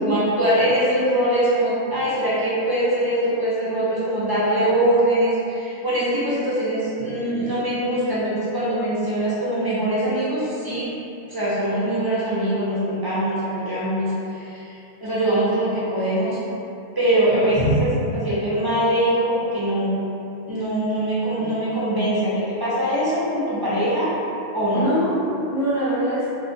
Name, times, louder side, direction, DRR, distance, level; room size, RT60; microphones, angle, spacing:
voice 1, 0.0-10.9 11.3-14.7 15.0-16.4 16.9-17.9 18.1-20.0 20.5-24.1 24.5-24.9, right 1 dB, 30° right, -10 dB, 0.5 m, -22 dB
voice 2, 17.3-17.9 24.7-26.3, right 1 dB, 50° left, -11 dB, 0.4 m, -23 dB
3.0 x 2.2 x 2.7 m, 2.7 s
omnidirectional pair, 1.2 m